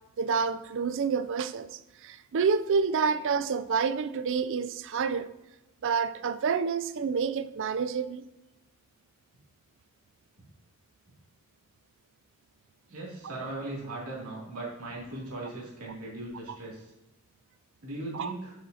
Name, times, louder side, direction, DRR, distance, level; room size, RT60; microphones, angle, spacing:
voice 1, 0.2-5.3 5.8-8.2 18.1-18.3, right 5 dB, 60° right, 0.4 m, -28 dB
voice 2, 12.9-16.9 17.8-18.5, right 2 dB, 85° right, 2.6 m, -38 dB
7.9 x 7.7 x 2.8 m
head